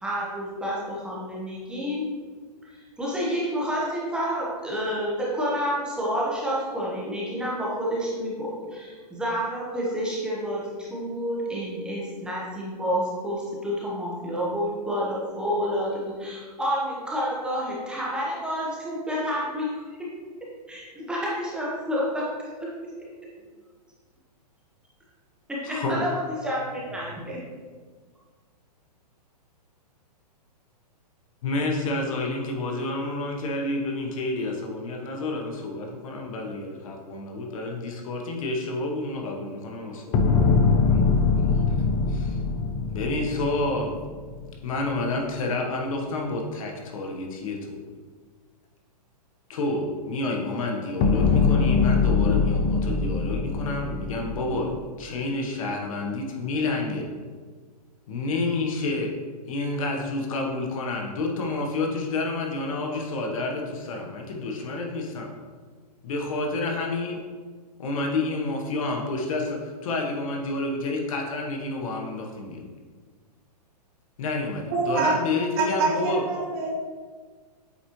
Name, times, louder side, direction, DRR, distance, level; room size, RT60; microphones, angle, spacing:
voice 1, 0.0-2.1 3.0-19.9 20.7-22.3 25.5-26.1 26.4-27.4, equal, 5° right, -6 dB, 1.0 m, -29 dB
voice 2, 25.6-26.0 31.4-41.0 42.1-42.4 42.9-43.9 44.6-47.8 49.5-57.1 58.1-59.1 59.4-65.3 66.0-67.2 67.8-72.6 74.2-76.2, left 2 dB, 55° left, 1 dB, 1.2 m, -29 dB
sound 1, 40.1-44.4 51.0-54.8, left 4 dB, 20° left, 0.4 m, -23 dB
voice 3, 74.7-75.2 75.6-76.7, right 4 dB, 35° right, -2 dB, 1.4 m, -25 dB
8.2 x 4.1 x 3.1 m, 1.5 s
hypercardioid pair, 150°, 21 cm